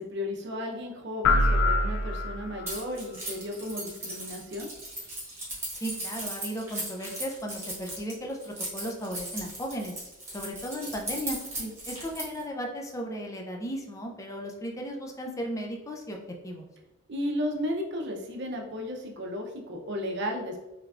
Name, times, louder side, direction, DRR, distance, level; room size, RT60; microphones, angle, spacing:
voice 1, 0.0-4.7 11.6-11.7 17.1-20.6, left 1 dB, 55° right, 2 dB, 0.6 m, -34 dB
sound 1, 1.2-2.8, left 2 dB, 85° left, 0.3 m, -24 dB
Keys jangling, 2.7-12.4, right 1 dB, 10° right, 1.2 m, -37 dB
voice 2, 5.8-10.0 10.3-11.4 11.9-16.2 16.4-16.6, equal, 15° left, 1 dB, 0.4 m, -35 dB
3.5 x 3.2 x 2.4 m, 1.0 s
head